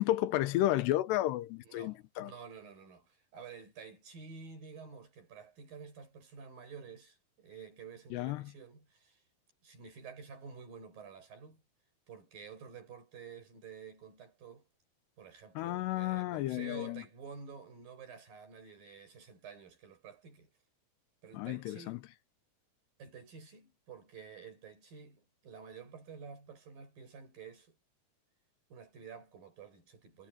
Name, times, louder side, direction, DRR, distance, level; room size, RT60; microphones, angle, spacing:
voice 1, 0.0-2.3 8.1-8.5 15.6-17.0 21.3-22.0, left 15 dB, 90° left, 3.1 m, -32 dB
voice 2, 1.6-9.2 9.6-11.6 12.1-14.7 15.2-20.5 21.2-22.1 23.0-27.8 28.7-30.3, right 6 dB, 60° right, 7.8 m, -50 dB
omnidirectional pair, 4.7 m